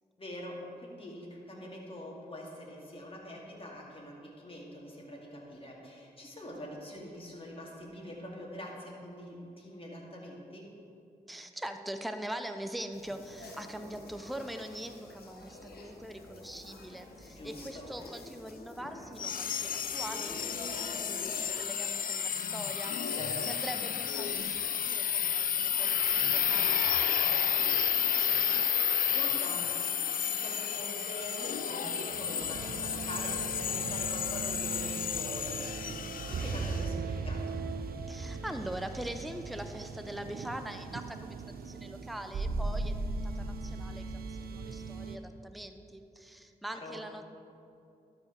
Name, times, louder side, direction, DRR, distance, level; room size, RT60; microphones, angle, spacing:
voice 1, 0.2-10.7 17.3-17.9 23.1-23.5 29.1-37.6 46.7-47.0, left 1 dB, 35° left, -3 dB, 2.1 m, -44 dB
voice 2, 11.3-28.6 38.1-47.3, right 1 dB, ahead, 7 dB, 0.6 m, -43 dB
sound 1, 12.9-21.4, left 2 dB, 75° left, 1.2 m, -48 dB
sound 2, 19.2-36.9, left 8 dB, 60° left, 0.4 m, -31 dB
sound 3, 32.4-45.2, right 4 dB, 70° right, 0.6 m, -38 dB
12.5 x 4.8 x 4.6 m, 2.7 s
cardioid pair, 45°, 16 cm